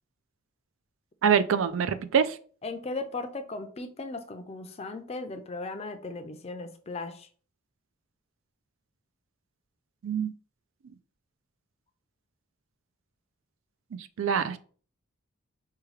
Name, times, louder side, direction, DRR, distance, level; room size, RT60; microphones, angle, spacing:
voice 1, 1.2-2.4 10.0-10.3 13.9-14.6, right 7 dB, 75° right, 0.4 m, -25 dB
voice 2, 2.6-7.3, left 3 dB, 30° left, 0.4 m, -37 dB
4.8 x 2.3 x 3.2 m
head